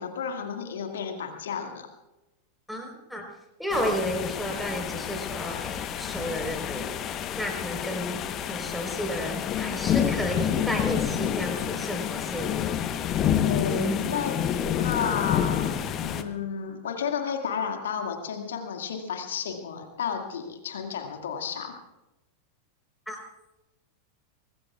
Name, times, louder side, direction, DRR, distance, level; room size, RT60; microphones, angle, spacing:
voice 1, 0.0-1.9 13.4-21.8, left 7 dB, 60° left, 4 dB, 2.0 m, -32 dB
voice 2, 2.7-3.3 3.6-7.0 7.3-12.5 13.7-14.0 23.1-23.2, equal, ahead, 1 dB, 4.0 m, -32 dB
sound 1, 3.7-16.2, left 9 dB, 30° left, 1.0 m, -29 dB
24.0 x 20.5 x 2.4 m, 0.99 s
figure-of-eight pair, 90°, 0 cm